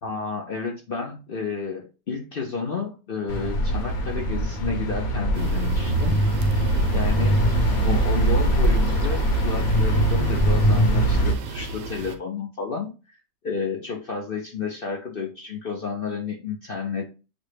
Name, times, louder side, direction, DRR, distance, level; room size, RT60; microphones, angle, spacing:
voice 1, 0.0-6.2 6.9-7.4 7.8-13.2 13.4-17.0, left 5 dB, 80° left, 1 dB, 0.5 m, -31 dB
sound 1, 3.3-11.3, right 1 dB, 60° left, 1.1 m, -21 dB
sound 2, 5.3-12.2, right 3 dB, 85° right, 1.3 m, -35 dB
6.3 x 2.2 x 3.2 m, 0.32 s
omnidirectional pair, 1.8 m